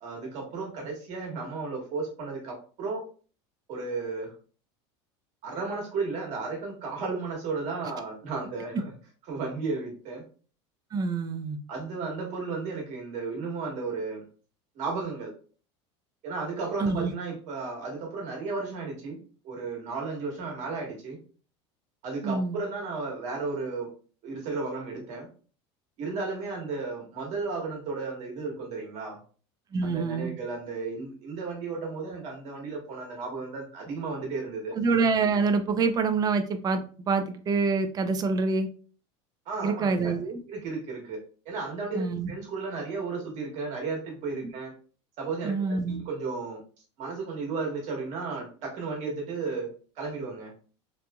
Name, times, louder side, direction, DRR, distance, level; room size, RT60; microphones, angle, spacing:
voice 1, 0.0-3.0 3.7-4.3 5.4-8.9 9.3-10.2 11.7-14.2 14.7-15.3 16.2-21.2 22.0-23.9 24.2-25.3 26.0-29.2 29.8-34.8 39.5-40.1 40.5-41.2 41.4-44.7 45.2-46.6 47.0-49.7 50.0-50.5, right 4 dB, 55° right, 0 dB, 1.3 m, -34 dB
voice 2, 10.9-11.6 16.8-17.1 22.2-22.6 29.7-30.3 34.7-38.7 39.6-40.4 41.9-42.3 45.4-46.0, right 4 dB, 25° right, 8 dB, 0.4 m, -26 dB
3.0 x 2.5 x 2.2 m, 0.40 s
supercardioid pair, 115°, 14 cm